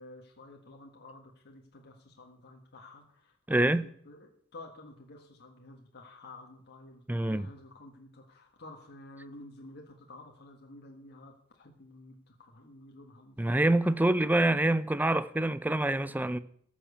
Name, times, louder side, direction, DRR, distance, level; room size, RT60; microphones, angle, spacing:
voice 1, 0.0-7.0 7.3-14.3, left 2 dB, 50° left, 1.7 m, -51 dB
voice 2, 3.5-3.8 7.1-7.5 13.4-16.4, right 1 dB, 10° right, 0.5 m, -26 dB
13.5 x 7.4 x 6.9 m
head